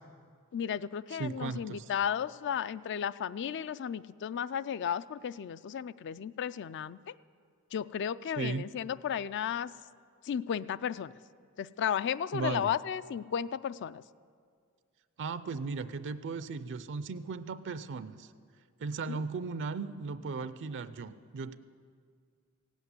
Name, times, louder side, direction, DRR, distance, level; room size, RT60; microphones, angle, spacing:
voice 1, 0.5-7.1 7.7-9.7 10.2-11.1 11.6-14.0 19.1-19.2, left 8 dB, 55° left, 17 dB, 0.3 m, -34 dB
voice 2, 1.1-1.9 8.4-8.7 12.3-12.7 15.2-18.3 18.8-21.5, right 4 dB, 55° right, 13 dB, 0.4 m, -36 dB
16.5 x 8.2 x 9.5 m, 2.1 s
head